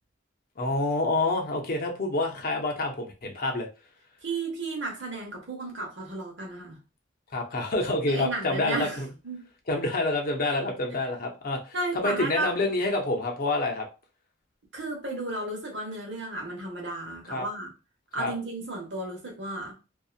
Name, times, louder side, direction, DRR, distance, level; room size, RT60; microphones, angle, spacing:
voice 1, 0.6-3.7 7.3-9.1 9.7-13.9 17.3-17.4 18.2-18.3, left 2 dB, 50° left, 0.6 m, -27 dB
voice 2, 4.2-6.8 8.1-9.0 9.2-9.5 10.5-10.7 11.7-12.5 14.7-17.7 18.1-19.7, right 2 dB, 65° right, 1.0 m, -33 dB
2.7 x 2.3 x 2.4 m
head